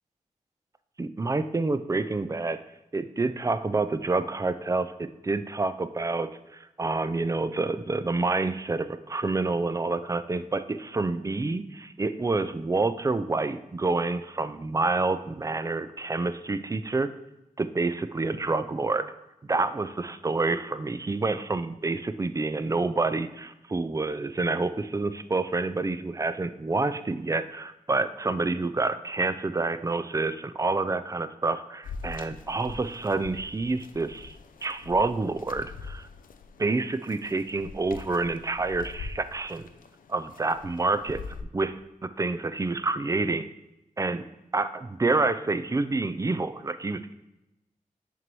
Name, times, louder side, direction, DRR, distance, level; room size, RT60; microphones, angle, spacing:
voice 1, 1.0-2.6 2.9-17.1 17.6-19.1 19.5-34.4 34.6-36.1 36.6-39.6 40.1-41.2 41.5-41.8 42.2-43.4 44.0-44.2 44.5-47.1, right 3 dB, 25° right, 12 dB, 0.4 m, -28 dB
sound 1, 31.8-41.4, left 5 dB, 85° left, 0.4 m, -44 dB
5.9 x 3.0 x 5.3 m, 0.93 s
cardioid pair, 60°, 14 cm